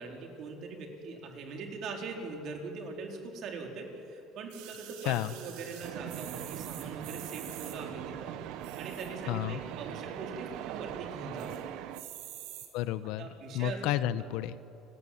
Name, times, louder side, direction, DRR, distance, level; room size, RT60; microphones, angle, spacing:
voice 1, 0.0-11.6 13.2-13.8, right 4 dB, 50° right, 2 dB, 4.3 m, -42 dB
sound 1, 4.5-7.8 8.5-9.2 9.7-9.8 10.0-10.1 10.5-10.9 11.4-11.6 11.9-12.7 13.4-13.5, right 12 dB, 85° right, 3.9 m, -46 dB
sound 2, 5.8-12.0, right 11 dB, 65° right, 1.2 m, -41 dB
voice 2, 9.3-9.6 12.7-13.3 13.5-14.6, left 13 dB, 70° left, 14 dB, 1.0 m, -31 dB
29.5 x 20.5 x 8.7 m, 2.7 s
cardioid pair, 155°, 0 cm